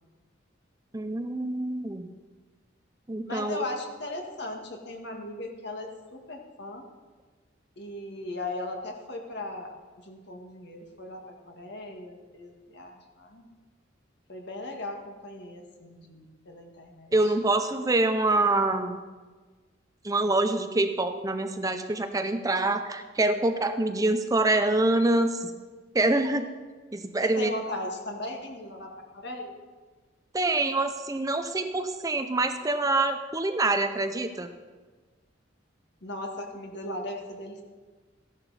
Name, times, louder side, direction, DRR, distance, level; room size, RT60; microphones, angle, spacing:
voice 1, 0.9-2.1 3.1-3.6 17.1-19.0 20.0-25.5 25.9-26.5 26.9-27.5 30.3-34.5, right 2 dB, 20° right, 8 dB, 0.5 m, -25 dB
voice 2, 3.3-6.9 7.8-13.5 14.3-17.3 26.0-26.2 27.2-29.6 36.0-37.6, left 2 dB, 60° left, 2 dB, 1.9 m, -38 dB
14.5 x 11.0 x 4.1 m, 1.4 s
head